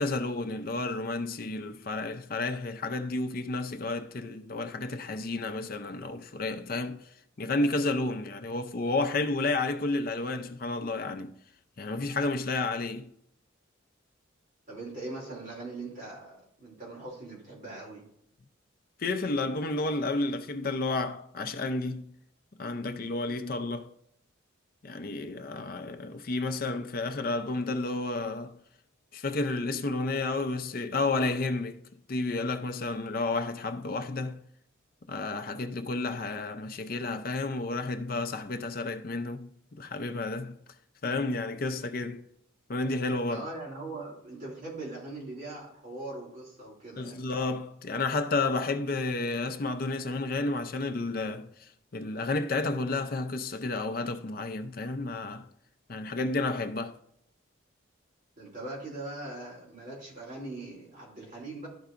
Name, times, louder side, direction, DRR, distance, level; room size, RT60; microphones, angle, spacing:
voice 1, 0.0-7.1 7.4-11.3 11.8-13.1 19.0-22.1 22.6-23.9 24.8-28.6 29.1-31.8 32.1-34.4 35.1-40.6 41.0-42.2 42.7-43.5 47.0-55.5 55.9-57.0, left 3 dB, 45° left, 0.5 m, -31 dB
voice 2, 14.7-18.1 43.3-47.2 58.4-61.7, right 2 dB, 40° right, 2.8 m, -41 dB
12.5 x 4.7 x 2.4 m
head